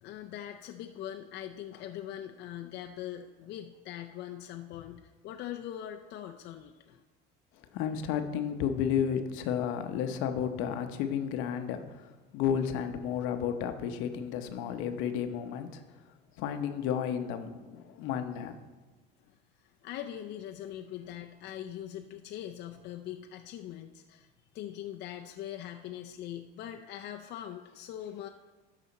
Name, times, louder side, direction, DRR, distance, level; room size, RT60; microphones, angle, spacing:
voice 1, 0.0-7.0 19.2-28.3, left 11 dB, 55° left, 4 dB, 0.5 m, -42 dB
voice 2, 7.7-15.8 16.4-18.6, left 8 dB, 75° left, 8 dB, 0.8 m, -32 dB
12.5 x 4.9 x 4.1 m, 1.2 s
cardioid pair, 125°, 21 cm